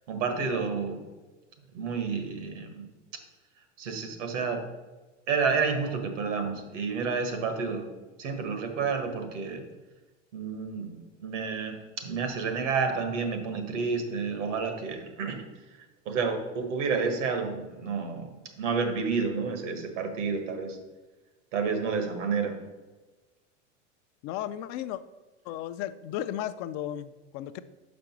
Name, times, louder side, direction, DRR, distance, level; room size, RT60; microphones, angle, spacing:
voice 1, 0.1-1.0 1.7-2.8 3.8-4.6 5.3-7.9 8.2-9.6 10.3-15.4 16.0-18.3 18.6-20.8 21.5-22.5, right 5 dB, 85° right, 6 dB, 1.5 m, -30 dB
voice 2, 24.2-25.0 25.5-27.6, left 11 dB, 50° left, 12 dB, 0.5 m, -34 dB
5.7 x 5.2 x 6.0 m, 1.2 s
supercardioid pair, 110°, 36 cm